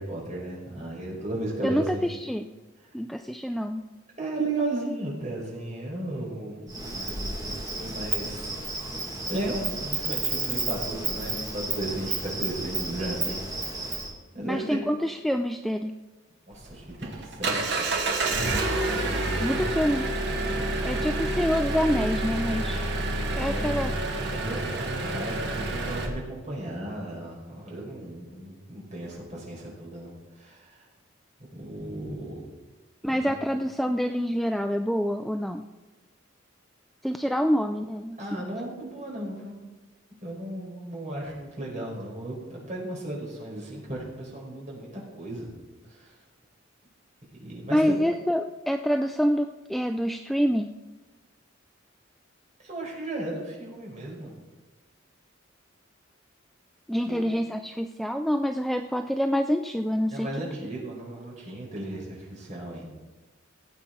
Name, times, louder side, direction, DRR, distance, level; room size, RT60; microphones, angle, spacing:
voice 1, 0.0-2.0 4.2-8.5 9.2-13.4 13.9-14.0 14.3-14.8 16.5-17.8 18.9-19.7 20.5-21.0 23.4-23.9 24.3-30.8 31.5-32.4 33.1-33.5 38.2-39.6 40.2-45.5 45.9-46.1 47.4-48.0 52.6-54.3 57.0-57.3 60.1-62.9, right 1 dB, 35° right, -3 dB, 4.9 m, -35 dB
voice 2, 1.6-2.5 2.9-3.8 14.4-15.9 19.4-20.1 20.8-22.9 23.3-23.9 33.0-35.6 37.0-38.4 47.7-50.7 56.9-60.3, equal, ahead, 6 dB, 0.3 m, -26 dB
Insect, 6.7-14.1, right 3 dB, 20° right, 2.2 m, -32 dB
Engine, 16.5-26.1, right 2 dB, 55° right, 1.9 m, -28 dB
18.0 x 8.4 x 4.0 m, 1.2 s
head